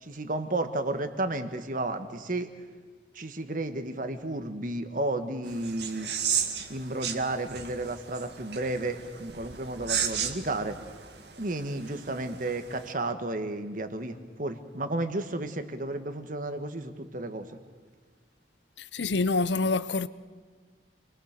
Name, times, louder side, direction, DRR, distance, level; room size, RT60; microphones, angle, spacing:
voice 1, 0.0-2.5 3.1-6.1 6.7-10.8 11.4-17.6, right 2 dB, 50° right, 1.6 m, -32 dB
sound 1, 5.4-12.9, right 7 dB, 70° right, 1.9 m, -35 dB
voice 2, 18.8-20.1, left 3 dB, 80° left, 0.8 m, -26 dB
28.0 x 21.5 x 6.7 m
head